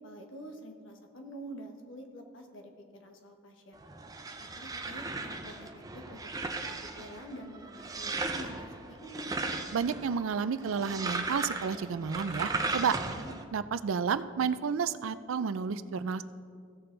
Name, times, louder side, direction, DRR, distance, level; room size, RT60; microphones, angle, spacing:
voice 1, 0.0-3.8 4.4-9.3 13.1-13.4, equal, 60° left, 3 dB, 1.2 m, -47 dB
sound 1, 3.8-13.4, right 3 dB, 15° right, 0.5 m, -37 dB
voice 2, 9.7-12.9 13.5-16.2, right 6 dB, 70° right, 14 dB, 0.4 m, -31 dB
16.0 x 6.7 x 3.9 m, 2.2 s
head